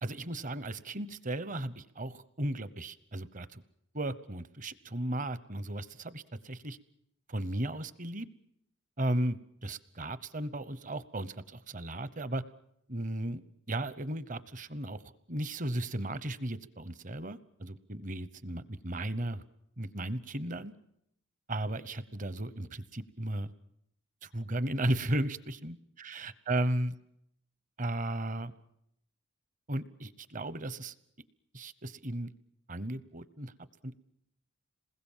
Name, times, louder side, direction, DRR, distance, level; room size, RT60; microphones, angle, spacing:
voice 1, 0.0-3.6 3.9-6.8 7.3-8.3 9.0-12.4 12.9-13.4 13.7-19.4 19.8-20.7 21.5-23.5 24.2-26.9 27.8-28.5 29.7-30.9 31.5-32.3 32.7-33.5 33.8-34.0, right 1 dB, 40° right, 15 dB, 0.9 m, -35 dB
27.5 x 20.5 x 7.4 m, 0.77 s
head